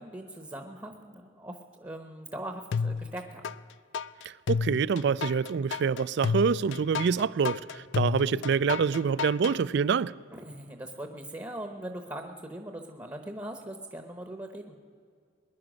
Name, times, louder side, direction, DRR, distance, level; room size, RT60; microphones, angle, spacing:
voice 1, 0.0-3.4 10.3-14.7, right 1 dB, 20° right, 0.9 m, -40 dB
sound 1, 2.7-3.6 3.9-9.6, left 5 dB, 65° left, 0.4 m, -31 dB
voice 2, 4.5-10.2, right 6 dB, 60° right, 0.3 m, -26 dB
21.0 x 10.5 x 6.3 m
head